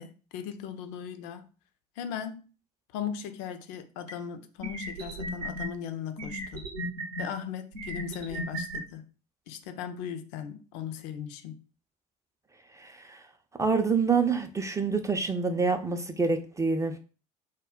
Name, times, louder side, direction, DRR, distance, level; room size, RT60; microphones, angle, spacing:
voice 1, 0.0-1.5 2.0-2.4 2.9-6.7 7.2-9.0 9.5-11.6, left 8 dB, 65° left, 0.4 m, -38 dB
sound 1, 4.1-4.2 4.6-5.7 6.2-7.2 7.7-8.8, right 1 dB, 85° right, 0.7 m, -35 dB
voice 2, 12.7-13.2 13.6-17.0, right 4 dB, 15° right, 0.4 m, -27 dB
2.2 x 2.1 x 3.6 m
hypercardioid pair, 60°, 20 cm